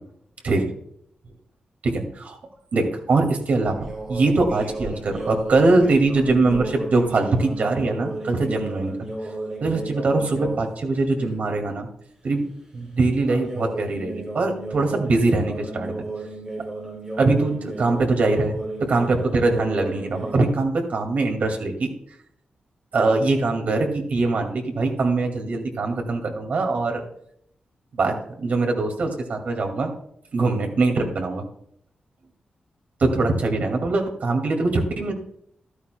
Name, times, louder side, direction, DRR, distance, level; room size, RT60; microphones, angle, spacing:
voice 1, 1.8-2.4 2.7-9.0 9.6-11.9 12.2-12.5 12.7-15.9 17.2-18.6 18.9-21.9 22.9-27.0 27.9-29.9 30.3-31.5 33.0-35.1, right 3 dB, 60° right, 3 dB, 2.1 m, -22 dB
sound 1, 3.5-10.6 10.9-11.4 13.3-20.3, right 2 dB, 25° right, 3.6 m, -34 dB
14.0 x 12.5 x 2.2 m, 0.70 s
wide cardioid pair, 165°, 3 cm